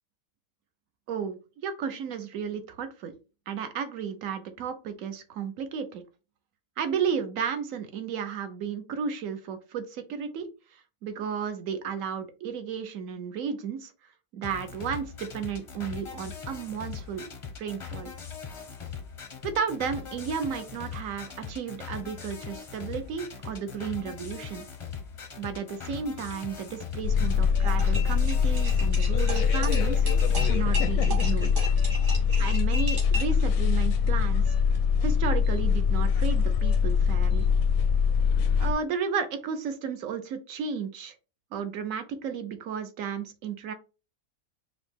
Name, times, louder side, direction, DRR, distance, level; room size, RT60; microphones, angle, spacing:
voice 1, 1.1-3.1 3.5-6.0 6.8-13.9 14.3-17.2 17.6-18.1 19.4-24.6 25.4-30.0 30.5-31.5 32.4-34.5 35.0-37.4 38.6-41.1 41.5-43.7, right 7 dB, 75° right, 8 dB, 1.1 m, -33 dB
sound 1, 14.4-30.4, left 6 dB, 35° left, 0.5 m, -41 dB
sound 2, 27.0-38.7, left 6 dB, 80° left, 1.0 m, -23 dB
sound 3, 27.6-33.4, equal, 60° right, 2.2 m, -36 dB
5.4 x 2.1 x 3.3 m, 0.31 s
omnidirectional pair, 1.5 m